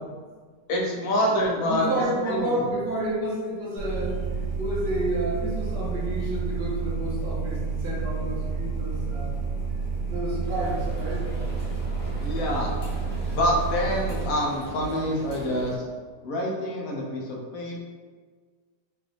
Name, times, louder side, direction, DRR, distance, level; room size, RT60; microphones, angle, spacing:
voice 1, 0.7-1.9 2.2-2.6 12.2-12.7 13.3-15.9 16.2-17.8, equal, 65° left, -1 dB, 1.0 m, -26 dB
voice 2, 1.5-9.5 10.1-11.3, right 1 dB, 70° right, -4 dB, 1.5 m, -30 dB
sound 1, 3.8-14.3, right 4 dB, 20° right, 1.1 m, -30 dB
sound 2, 10.4-15.8, equal, 35° left, 1.2 m, -39 dB
4.6 x 2.6 x 3.1 m, 1.5 s
omnidirectional pair, 1.9 m